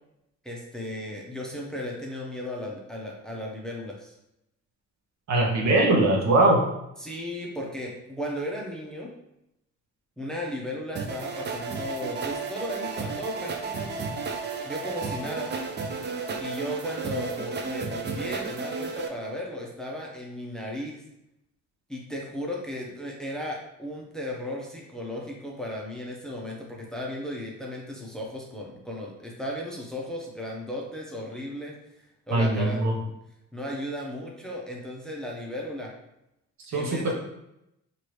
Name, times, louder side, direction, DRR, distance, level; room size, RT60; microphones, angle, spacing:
voice 1, 0.4-4.1 7.0-9.1 10.2-14.0 14.6-15.5 16.4-21.0 21.9-31.7 32.3-33.2 33.5-35.9 36.7-37.1, left 1 dB, ahead, -2 dB, 0.7 m, -35 dB
voice 2, 5.3-6.6 32.3-32.9 36.7-37.1, right 2 dB, 65° right, 0 dB, 0.8 m, -21 dB
sound 1, 11.0-19.1, right 4 dB, 35° right, 0.4 m, -33 dB
2.9 x 2.5 x 3.1 m, 0.84 s
cardioid pair, 90°, 30 cm